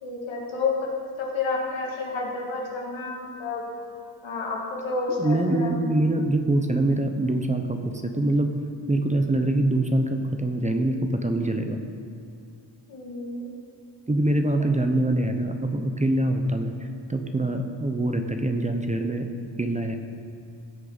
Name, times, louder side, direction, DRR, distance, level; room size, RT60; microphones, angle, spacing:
voice 1, 0.0-0.8 1.2-3.7 4.2-5.7 12.9-13.5, left 4 dB, 85° left, -3 dB, 2.3 m, -30 dB
voice 2, 5.2-8.5 8.9-11.8 14.1-16.7 17.1-19.3 19.6-20.0, right 1 dB, 15° right, 5 dB, 0.7 m, -24 dB
16.0 x 6.5 x 4.0 m, 2.5 s
cardioid pair, 85°, 45 cm